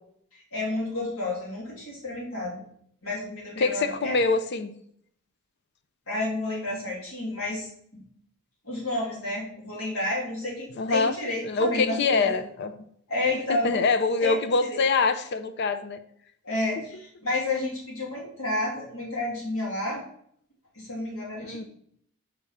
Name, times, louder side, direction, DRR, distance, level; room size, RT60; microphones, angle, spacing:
voice 1, 0.3-2.6 3.0-4.2 6.1-7.7 8.6-12.3 13.1-13.8 14.2-14.4 14.7-14.8 16.4-20.0 20.7-21.7, left 2 dB, 90° left, -5 dB, 2.8 m, -30 dB
voice 2, 3.6-4.7 10.8-11.1 11.5-12.7 13.5-16.0 21.4-21.6, left 4 dB, 55° left, 9 dB, 0.5 m, -24 dB
5.1 x 3.6 x 5.6 m, 0.66 s
head